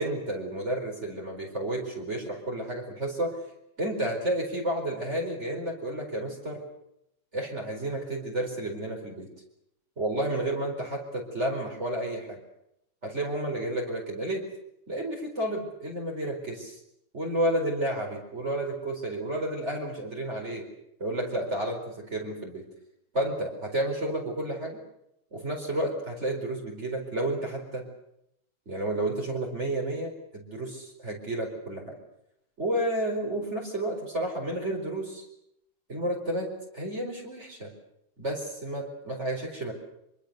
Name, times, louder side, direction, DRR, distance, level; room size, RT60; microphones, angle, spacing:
voice 1, 0.0-3.4 3.8-6.6 7.3-9.3 10.0-12.4 13.0-14.5 14.9-16.8 17.1-20.7 21.0-22.7 23.1-24.8 25.3-27.8 28.7-32.0 32.6-35.2 35.9-37.7 38.2-39.7, right 1 dB, 35° right, 0 dB, 4.9 m, -31 dB
25.0 x 24.5 x 6.8 m, 0.80 s
omnidirectional pair, 2.2 m